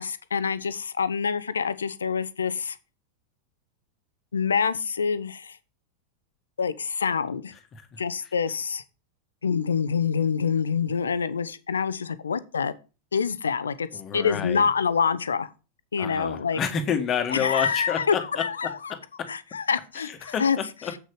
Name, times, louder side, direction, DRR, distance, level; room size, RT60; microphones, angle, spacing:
voice 1, 0.0-2.8 4.3-5.6 6.6-7.5 8.0-8.8 9.4-12.7 13.1-13.9 14.1-15.5 15.9-16.6 17.3-18.9 19.3-20.6, left 6 dB, 70° left, 0.8 m, -26 dB
voice 2, 13.9-14.7 16.0-19.3 20.1-20.9, left 7 dB, 30° left, 1.8 m, -30 dB
7.9 x 6.4 x 5.0 m
figure-of-eight pair, 90°, 0 cm